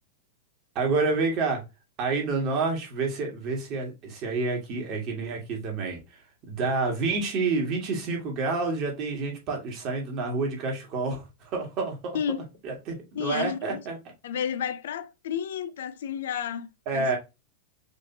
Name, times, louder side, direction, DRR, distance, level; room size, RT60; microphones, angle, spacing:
voice 1, 0.8-1.6 2.0-6.0 6.5-12.2 12.6-14.0 16.9-17.2, right 3 dB, 45° right, 2.1 m, -28 dB
voice 2, 13.1-13.8 14.2-17.2, left 8 dB, 70° left, 0.5 m, -31 dB
5.2 x 3.3 x 2.8 m
hypercardioid pair, 95°, 0 cm